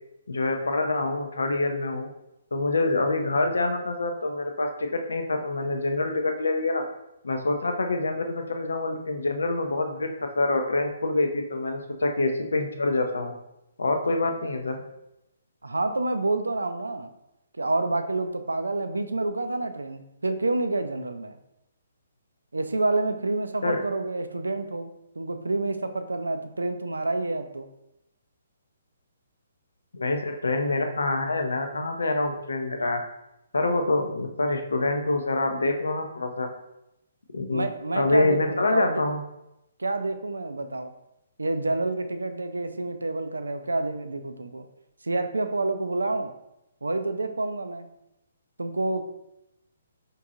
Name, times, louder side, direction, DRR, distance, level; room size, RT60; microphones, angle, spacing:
voice 1, 0.3-2.1 2.5-6.8 7.2-13.3 13.8-14.8 23.6-23.8 29.9-33.0 33.5-36.5 37.3-39.2, left 2 dB, 70° left, 5 dB, 0.5 m, -26 dB
voice 2, 15.6-17.1 17.6-21.4 22.5-24.9 25.2-27.7 37.5-39.0 39.8-40.9 41.4-44.7 45.0-46.3 46.8-47.9 48.6-49.0, right 2 dB, 75° right, 8 dB, 0.4 m, -28 dB
4.6 x 2.6 x 2.5 m, 0.87 s
figure-of-eight pair, 130°, 0 cm